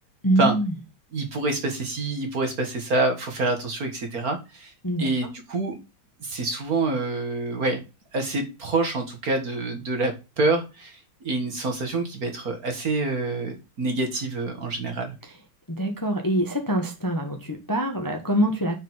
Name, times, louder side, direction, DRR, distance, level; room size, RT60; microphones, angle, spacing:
voice 1, 0.2-0.7 4.8-5.1 15.8-18.7, right 1 dB, 10° left, 3 dB, 1.2 m, -24 dB
voice 2, 1.1-4.7 5.0-5.8 6.2-7.8 8.1-11.0 11.2-15.1, right 2 dB, 45° right, 4 dB, 2.1 m, -26 dB
6.2 x 5.1 x 5.8 m, 0.27 s
omnidirectional pair, 2.3 m